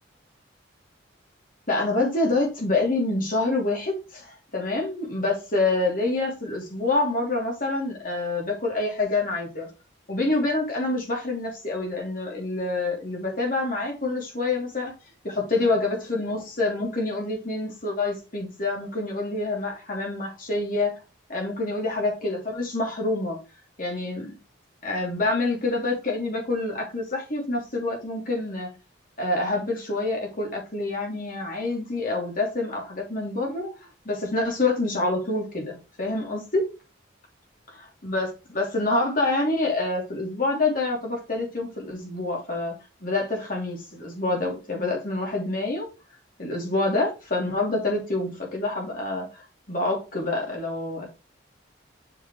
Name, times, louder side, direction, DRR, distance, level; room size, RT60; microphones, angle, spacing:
voice 1, 1.7-9.7 10.1-14.9 15.2-21.0 21.3-23.4 23.8-24.4 24.8-28.7 29.2-33.7 34.0-36.6 37.7-42.7 43.0-45.9 46.4-51.1, left 2 dB, 45° left, 2.9 m, -27 dB
7.1 x 5.8 x 3.1 m
head